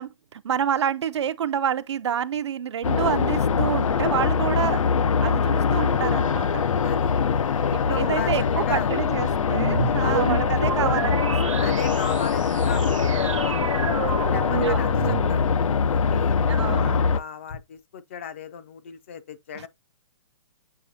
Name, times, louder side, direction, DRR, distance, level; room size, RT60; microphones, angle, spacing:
voice 1, 0.0-4.8 5.2-6.6 7.7-11.8 14.6-14.9 16.5-17.1 19.5-19.7, right 8 dB, 60° right, 0.5 m, -28 dB
sound 1, 2.8-17.2, left 6 dB, 90° left, 0.6 m, -23 dB
voice 2, 6.8-7.1 7.7-8.3 8.7-8.9 10.0-10.3 11.6-13.5 14.2-15.4 15.9-19.7, left 8 dB, 25° left, 0.4 m, -36 dB
sound 2, 9.4-15.7, right 7 dB, 80° right, 1.0 m, -30 dB
sound 3, 13.0-13.2 13.5-14.0 14.4-14.8 15.1-15.6 15.9-16.3 16.7-17.2 17.5-17.6, left 3 dB, 50° left, 0.9 m, -36 dB
7.5 x 4.8 x 2.7 m
hypercardioid pair, 175°, 16 cm